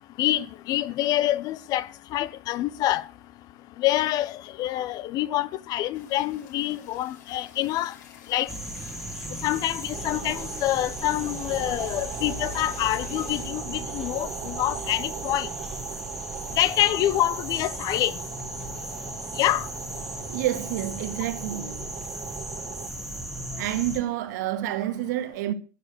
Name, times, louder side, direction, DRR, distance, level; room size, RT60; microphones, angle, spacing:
voice 1, 0.2-3.0 3.8-7.9 8.3-8.5 9.4-15.5 16.5-18.2 19.3-19.7, left 14 dB, 40° left, 0.8 m, -26 dB
sound 1, 5.9-13.8 14.3-14.4 14.6-14.9 15.3-16.6, left 7 dB, 70° left, 6.3 m, -49 dB
sound 2, 8.5-24.0, equal, ahead, 1.8 m, -36 dB
sound 3, 9.9-22.9, right 10 dB, 35° right, 1.4 m, -40 dB
voice 2, 20.3-21.9 23.6-25.5, right 13 dB, 65° right, 2.0 m, -28 dB
12.0 x 10.0 x 6.9 m
supercardioid pair, 130°, 10 cm